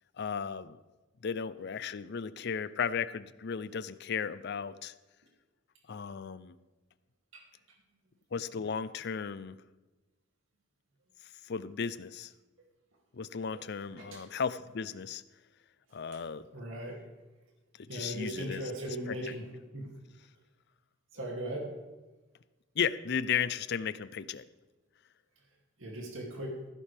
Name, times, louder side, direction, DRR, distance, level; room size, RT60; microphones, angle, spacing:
voice 1, 0.2-0.8 1.2-4.9 5.9-6.5 8.3-9.6 11.4-12.3 13.1-15.2 15.9-16.5 17.8-19.3 22.8-24.4, left 6 dB, 55° left, 16 dB, 0.5 m, -35 dB
voice 2, 16.5-17.0 17.9-19.5 19.7-19.9 21.1-21.7 25.8-26.5, right 1 dB, 75° right, -1 dB, 2.7 m, -38 dB
14.5 x 11.5 x 3.4 m, 1.2 s
head